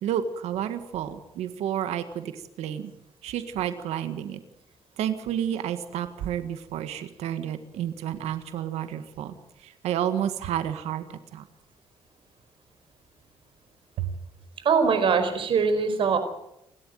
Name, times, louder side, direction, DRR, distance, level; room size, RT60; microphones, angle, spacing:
voice 1, 0.0-2.9 3.2-4.4 5.0-9.3 9.6-11.5 14.0-14.2, right 10 dB, 85° right, 10 dB, 1.8 m, -30 dB
voice 2, 14.6-16.2, right 5 dB, 55° right, 9 dB, 4.9 m, -22 dB
29.0 x 12.5 x 9.3 m, 0.81 s
cardioid pair, 115°, 11 cm